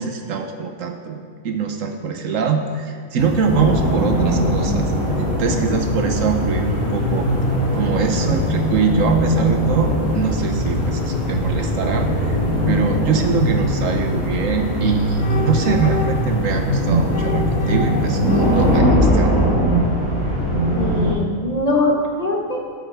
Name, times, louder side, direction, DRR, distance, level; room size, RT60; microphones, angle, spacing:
voice 1, 0.0-4.9 5.4-7.3 7.7-12.4 12.7-19.4, right 6 dB, 70° right, 5 dB, 1.1 m, -23 dB
sound 1, 3.2-18.8, left 3 dB, 45° left, 0.7 m, -26 dB
sound 2, 3.5-21.1, right 1 dB, 85° right, 3.0 m, -21 dB
voice 2, 20.7-22.6, left 2 dB, 30° left, -2 dB, 1.1 m, -21 dB
12.0 x 8.3 x 3.4 m, 2.2 s
omnidirectional pair, 1.5 m